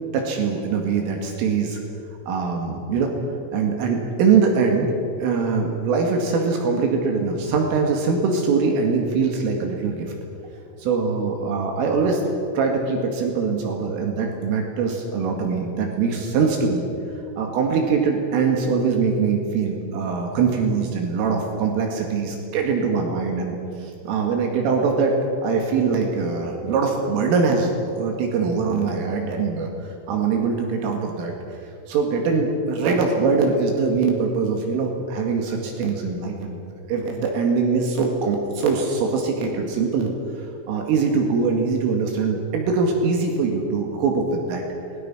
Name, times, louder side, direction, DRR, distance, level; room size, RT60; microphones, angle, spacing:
voice 1, 0.1-1.8 2.3-3.1 3.5-4.9 5.2-10.1 10.8-12.2 12.5-16.9 17.4-25.1 25.4-31.3 31.9-36.6 36.9-40.1 40.7-44.6, right 5 dB, 75° right, 2 dB, 4.5 m, -22 dB
27.5 x 20.5 x 6.1 m, 2.7 s
omnidirectional pair, 5.9 m